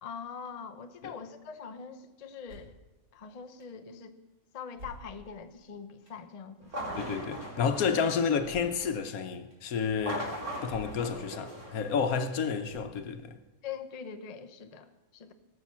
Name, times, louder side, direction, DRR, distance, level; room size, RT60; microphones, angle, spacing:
voice 1, 0.0-2.7 3.1-4.2 4.5-7.0 13.6-15.3, left 6 dB, 35° left, 0.6 m, -43 dB
sound 1, 2.5-2.8 3.6-3.7 4.7-5.4 6.1-6.2 8.4-8.9 9.5-9.6 10.6-11.1 11.6-11.7 12.7-13.2, equal, 60° right, 4.1 m, -49 dB
sound 2, 6.6-8.8 9.9-12.4, equal, 80° right, 4.3 m, -40 dB
voice 2, 6.9-10.3 10.6-13.4, left 6 dB, 75° left, 1.3 m, -30 dB
17.5 x 6.5 x 7.2 m
omnidirectional pair, 1.5 m